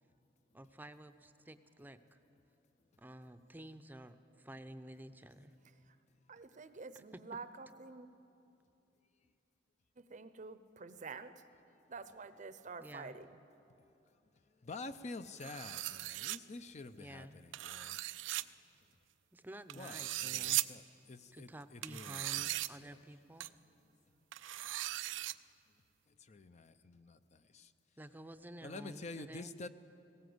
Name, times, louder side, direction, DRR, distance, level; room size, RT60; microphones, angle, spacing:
voice 1, 0.5-2.2 3.0-5.5 6.9-7.0 12.8-13.2 17.0-17.4 19.3-20.6 21.3-23.5 28.0-29.5, right 1 dB, 10° right, 0.6 m, -51 dB
voice 2, 6.3-8.1 10.1-11.3 11.9-13.3, right 4 dB, 45° right, 0.7 m, -48 dB
voice 3, 14.6-18.0 18.4-18.5 19.7-23.0 23.8-23.9 26.1-27.7 28.6-29.7, left 3 dB, 40° left, 0.5 m, -49 dB
sound 1, 15.4-16.4 17.5-18.4 19.7-20.6 21.8-22.7 23.4-23.5 24.3-25.3, right 16 dB, 85° right, 0.4 m, -38 dB
19.5 x 17.0 x 7.9 m
head